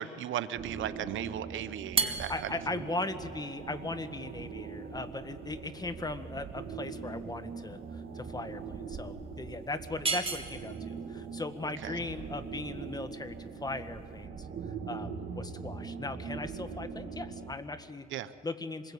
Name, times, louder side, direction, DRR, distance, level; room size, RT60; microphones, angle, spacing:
voice 1, 0.0-2.5 11.8-12.0 18.1-18.3, right 11 dB, 75° right, 14 dB, 1.0 m, -36 dB
sound 1, 0.5-17.5, right 5 dB, 55° right, 2.5 m, -42 dB
sound 2, 1.8-14.3, right 4 dB, 30° right, 2.1 m, -39 dB
voice 2, 2.3-18.1 18.4-18.9, left 2 dB, 20° left, 10 dB, 1.5 m, -38 dB
26.5 x 21.5 x 8.5 m, 2.1 s
cardioid pair, 90°, 20 cm